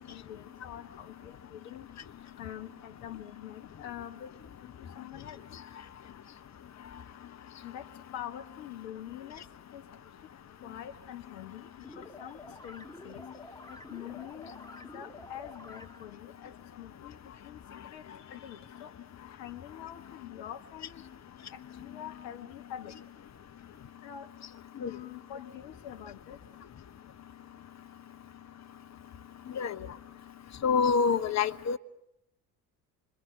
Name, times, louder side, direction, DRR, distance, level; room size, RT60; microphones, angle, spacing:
voice 1, 0.0-1.9 2.4-4.3 4.6-5.4 7.6-9.5 9.7-9.8 10.6-13.2 13.7-17.1 17.4-18.9 19.2-21.0 21.5-22.9 24.0-24.3 24.8-26.4, left 10 dB, 60° left, 1.8 m, -45 dB
sound 1, 11.8-16.2, left 1 dB, 10° left, 1.7 m, -49 dB
voice 2, 30.6-31.8, left 5 dB, 35° left, 1.1 m, -26 dB
26.5 x 26.0 x 7.8 m
figure-of-eight pair, 55°, 50 cm